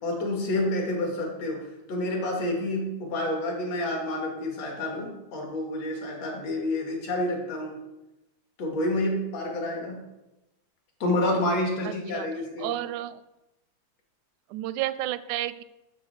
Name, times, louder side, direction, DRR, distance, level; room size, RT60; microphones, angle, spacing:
voice 1, 0.0-7.8 8.6-10.0 11.0-12.7, left 1 dB, 65° left, 0 dB, 3.2 m, -29 dB
voice 2, 12.6-13.2 14.5-15.6, right 14 dB, 85° right, 15 dB, 1.9 m, -31 dB
11.0 x 6.8 x 4.9 m, 0.98 s
omnidirectional pair, 3.3 m